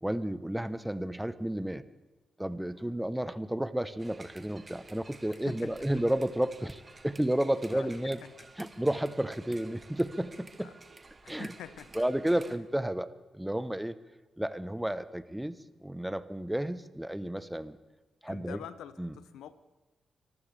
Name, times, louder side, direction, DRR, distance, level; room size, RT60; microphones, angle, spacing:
voice 1, 0.0-1.8 2.4-8.2 8.6-10.7 11.3-11.5 11.9-14.0 14.4-17.8 18.2-18.6 19.0-19.1, right 1 dB, 10° right, 14 dB, 0.9 m, -32 dB
sound 1, 4.0-12.6, right 3 dB, 35° right, 1.4 m, -53 dB
voice 2, 5.3-5.7 7.7-8.5 10.6-10.7 11.2-12.0 12.5-12.6 18.3-19.5, left 10 dB, 80° left, 14 dB, 0.6 m, -47 dB
24.5 x 14.5 x 3.4 m, 1.2 s
supercardioid pair, 45°, 0 cm